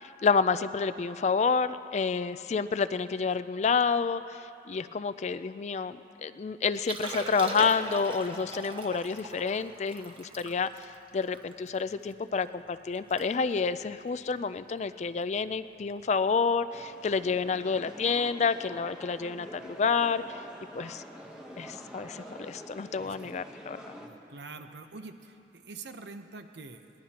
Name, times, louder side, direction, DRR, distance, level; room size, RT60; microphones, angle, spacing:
voice 1, 0.0-20.4 20.7-21.0 21.6-23.8, left 5 dB, 40° left, 13 dB, 0.3 m, -29 dB
Liquid, 6.7-12.1 12.6-12.7 12.9-13.3 13.5-13.8 14.4-14.6 16.1-16.2, right 2 dB, 30° right, 1.0 m, -40 dB
sound 1, 16.7-24.1, equal, 5° right, 1.1 m, -46 dB
voice 2, 23.0-23.4 24.0-26.9, right 3 dB, 75° right, 7 dB, 0.8 m, -45 dB
22.0 x 19.5 x 2.9 m, 2.8 s
head